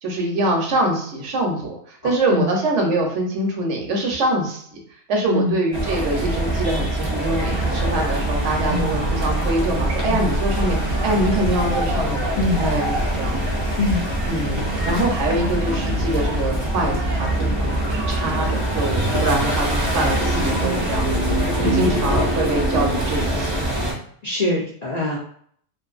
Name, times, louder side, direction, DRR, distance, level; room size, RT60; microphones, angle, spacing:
voice 1, 0.0-4.7 5.1-12.2 12.6-13.4 14.3-23.6, right 1 dB, 75° right, 1 dB, 1.0 m, -24 dB
sound 1, 5.7-23.9, right 1 dB, 45° right, 0.3 m, -23 dB
voice 2, 24.2-25.2, left 2 dB, 55° left, -5 dB, 0.4 m, -23 dB
2.5 x 2.5 x 2.3 m, 0.63 s
omnidirectional pair, 1.3 m